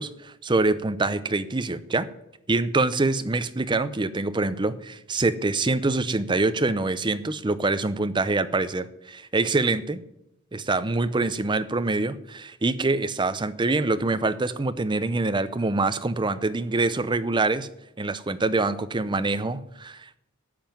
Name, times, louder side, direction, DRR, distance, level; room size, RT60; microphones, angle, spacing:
voice 1, 0.0-2.1 2.5-10.0 10.5-17.7 18.0-20.2, right 3 dB, 20° right, 13 dB, 0.6 m, -25 dB
13.5 x 5.6 x 9.1 m, 0.83 s
head